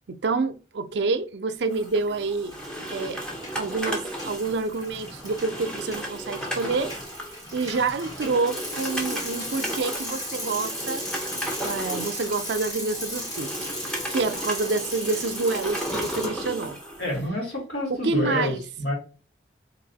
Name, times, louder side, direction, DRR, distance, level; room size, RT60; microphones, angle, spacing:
voice 1, 0.1-2.5 2.9-3.2 3.5-6.9 7.5-11.1 11.6-13.5 14.1-16.8 17.9-18.6, right 3 dB, 70° right, 0.5 m, -27 dB
sound 1, 1.7-17.3, right 1 dB, 5° left, 0.9 m, -35 dB
Bicycle, 1.8-2.2 2.5-16.3, left 1 dB, 25° left, 1.9 m, -36 dB
voice 2, 17.0-18.9, left 1 dB, 65° left, 2.3 m, -28 dB
3.3 x 3.0 x 4.0 m
head